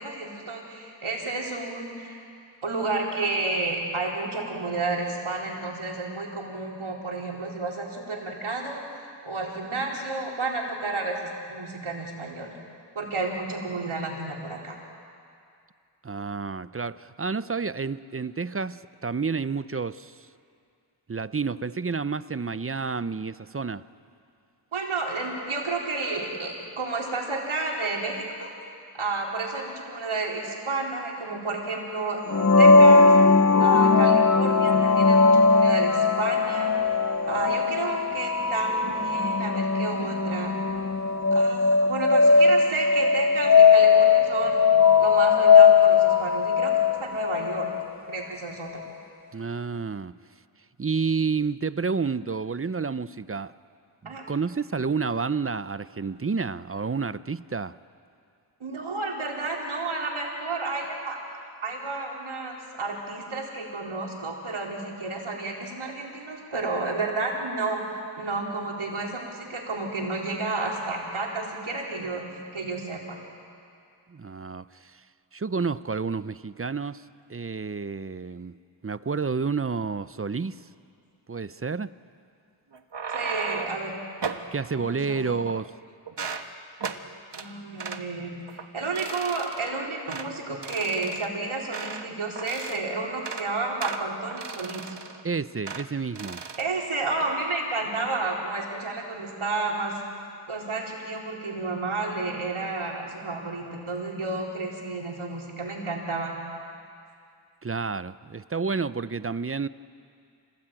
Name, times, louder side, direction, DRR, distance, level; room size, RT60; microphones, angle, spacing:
voice 1, 0.0-2.2 2.6-8.8 9.2-12.5 12.9-14.8 24.7-28.5 28.9-32.2 32.6-33.1 33.6-36.7 37.2-40.6 41.3-44.6 45.0-46.7 47.0-47.7 48.1-48.7 54.0-54.2 58.6-61.2 61.6-72.2 72.5-73.2 83.1-83.9 84.7-85.4 87.3-88.3 88.7-95.0 96.6-100.0 100.5-106.3, right 3 dB, 85° right, 4.3 m, -31 dB
voice 2, 16.0-20.2 21.1-23.8 49.3-50.1 50.8-53.5 54.0-57.8 74.1-75.0 75.3-77.0 77.3-78.6 78.8-80.6 81.3-81.9 84.5-85.7 95.2-96.4 107.6-109.7, right 5 dB, 30° right, 0.6 m, -30 dB
sound 1, 32.3-47.9, left 5 dB, 35° left, 0.8 m, -19 dB
sound 2, 82.7-83.8 84.2-84.5 85.1-85.8 86.1-86.5 86.8-87.0 87.3-87.5 87.8-88.0 88.5-88.7 89.0-89.7 90.1-90.3 90.6-92.1 92.4-92.8 93.1-93.5 93.8-95.2 95.7-95.9 96.2-96.7 97.0-97.4, right 5 dB, 60° right, 1.5 m, -35 dB
26.5 x 19.5 x 9.0 m
wide cardioid pair, 55°, 48 cm